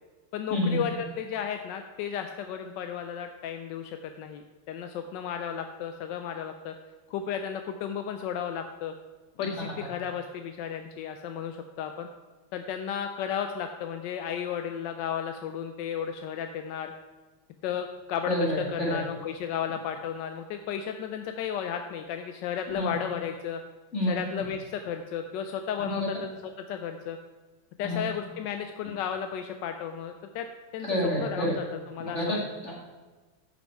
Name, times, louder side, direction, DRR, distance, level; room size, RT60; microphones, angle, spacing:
voice 1, 0.3-6.7 7.1-8.9 9.4-12.1 12.5-16.9 17.6-23.6 24.1-27.2 27.8-30.5 30.7-32.4, left 8 dB, 75° left, 6 dB, 1.1 m, -34 dB
voice 2, 18.3-18.6 18.9-19.0 22.8-22.9 23.9-24.1 25.8-26.0 27.8-28.0 30.9-31.5 32.1-32.7, left 1 dB, 35° left, -4 dB, 2.3 m, -28 dB
13.0 x 5.4 x 4.6 m, 1.3 s
omnidirectional pair, 2.2 m